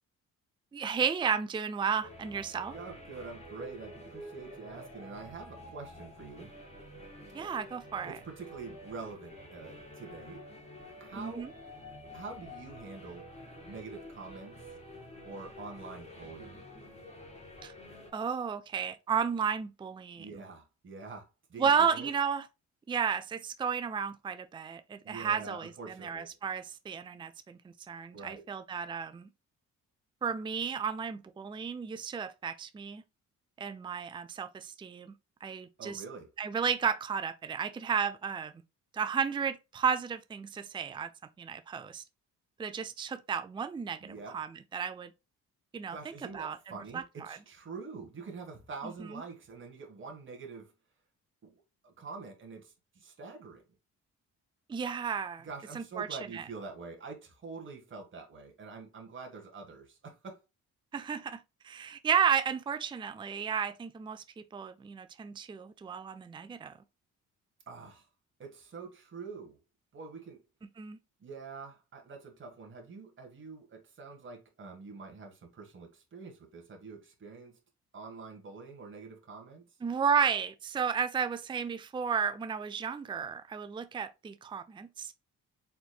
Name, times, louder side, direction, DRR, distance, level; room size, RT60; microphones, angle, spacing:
voice 1, 0.7-2.7 7.3-8.2 11.2-11.5 17.6-17.7 18.1-20.4 21.6-22.5 22.9-29.3 30.2-33.0 33.6-35.1 35.4-36.0 36.4-38.5 38.9-41.1 41.4-42.0 42.6-45.1 45.7-46.6 46.9-47.4 48.8-49.2 54.7-55.5 55.7-56.4 60.9-64.2 64.5-66.7 70.8-71.0 79.8-85.1, right 7 dB, 15° right, 0.4 m, -33 dB
sound 1, 2.0-18.1, left 1 dB, 20° left, 2.5 m, -49 dB
voice 2, 2.7-6.5 8.0-10.4 11.0-11.5 12.1-13.2 13.7-14.6 15.2-16.7 20.1-22.1 25.0-26.3 28.1-28.5 35.8-36.3 44.0-44.4 45.9-50.7 51.4-51.5 51.8-53.6 55.4-60.4 67.7-68.1 68.4-69.6 69.9-70.4 71.2-77.5 77.9-79.6, right 4 dB, 40° right, 1.7 m, -46 dB
4.4 x 4.1 x 2.3 m
cardioid pair, 90°, 30 cm